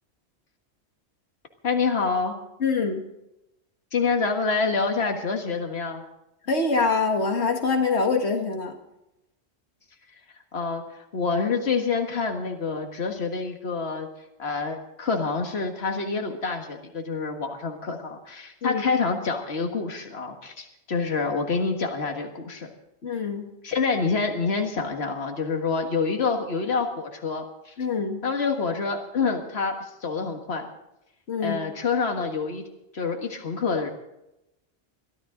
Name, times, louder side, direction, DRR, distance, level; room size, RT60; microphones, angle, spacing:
voice 1, 1.6-2.3 3.9-6.0 10.5-10.8 11.1-14.1 14.4-22.7 23.6-27.7 28.2-30.7 31.4-32.6 32.9-33.9, left 4 dB, 75° left, 4 dB, 2.0 m, -27 dB
voice 2, 2.6-3.0 6.5-8.7 18.6-18.8 23.0-23.5 27.8-28.2 31.3-31.6, left 4 dB, 90° left, 4 dB, 2.0 m, -24 dB
23.0 x 14.0 x 3.8 m, 0.89 s
omnidirectional pair, 1.1 m